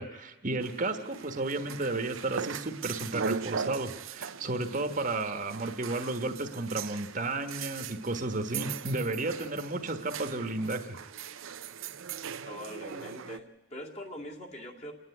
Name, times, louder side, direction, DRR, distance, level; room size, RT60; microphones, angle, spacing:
voice 1, 0.0-11.0, right 2 dB, 40° right, 7 dB, 1.3 m, -33 dB
sound 1, 0.6-13.4, right 6 dB, 85° right, 0.7 m, -40 dB
voice 2, 12.4-14.9, equal, 35° left, 0 dB, 2.4 m, -43 dB
29.0 x 10.0 x 9.6 m, 1.2 s
head